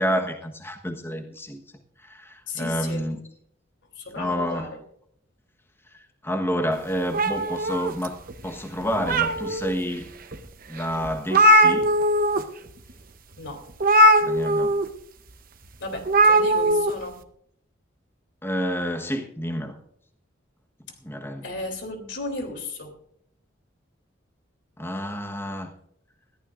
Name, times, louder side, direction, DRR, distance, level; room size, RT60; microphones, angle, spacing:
voice 1, 0.0-1.6 2.0-3.2 4.2-4.7 5.9-10.1 10.7-11.9 14.2-14.8 18.4-19.8 21.0-21.5 24.8-25.7, equal, 10° left, 1.2 m, -29 dB
voice 2, 2.5-3.1 3.9-4.8 13.4-13.6 15.8-17.2 20.9-21.0 21.4-22.9, left 2 dB, 70° left, 3.2 m, -34 dB
sound 1, 7.1-8.3 8.8-9.7 10.3-10.4 10.8-10.9 11.0-12.4 12.7-12.9 13.8-14.8 16.0-16.9, right 1 dB, 45° right, 0.9 m, -19 dB
20.5 x 14.5 x 2.6 m
head